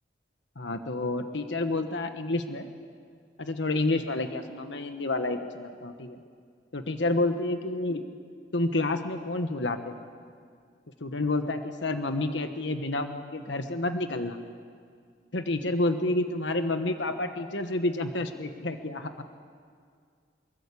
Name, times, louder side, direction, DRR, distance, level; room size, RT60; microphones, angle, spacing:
voice 1, 0.6-2.7 3.4-6.2 6.7-8.0 8.5-10.0 11.0-14.4 15.3-19.1, left 2 dB, 80° left, 7 dB, 1.3 m, -29 dB
24.0 x 22.5 x 8.5 m, 2.1 s
head